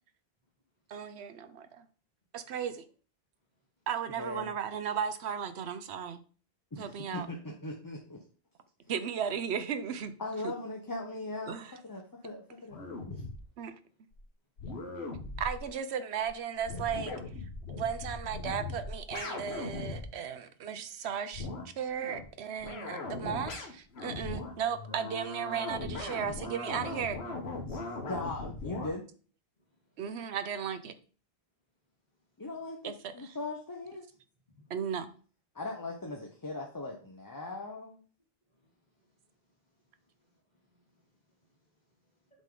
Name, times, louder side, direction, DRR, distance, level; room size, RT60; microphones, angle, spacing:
voice 1, 0.9-1.8 2.3-2.8 3.9-6.2 6.8-7.3 8.9-10.1 11.5-11.7 13.6-13.7 15.4-17.1 17.7-21.5 21.8-27.2 30.0-30.9 32.8-32.9 33.2-33.4 34.7-35.1, right 7 dB, 80° right, 0.9 m, -35 dB
voice 2, 4.1-4.5 6.7-8.2 10.2-11.6 11.8-12.8 13.1-13.2 27.7-27.8 28.1-29.0 32.4-34.0 35.5-38.0, left 2 dB, 20° left, 0.7 m, -39 dB
sound 1, 12.7-13.4 14.1-14.2 14.6-15.7 16.2-16.3 16.6-20.0 21.3-21.7 22.0-22.2 22.6-28.9, left 3 dB, 75° left, 1.3 m, -39 dB
voice 3, 29.6-30.0 34.5-34.7 38.5-39.2 39.5-42.3, left 2 dB, 40° left, 2.3 m, -71 dB
7.4 x 3.6 x 3.8 m
omnidirectional pair, 1.1 m